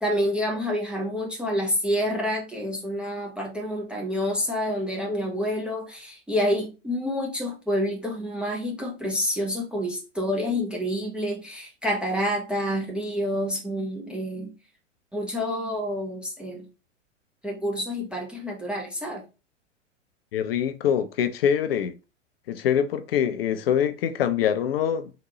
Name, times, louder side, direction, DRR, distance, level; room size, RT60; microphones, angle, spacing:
voice 1, 0.0-14.5 15.1-16.7 17.4-19.2, equal, 5° right, 0.4 m, -28 dB
voice 2, 20.3-21.9 22.5-25.1, left 9 dB, 50° left, 0.5 m, -24 dB
3.8 x 2.1 x 2.9 m
figure-of-eight pair, 100°, 38 cm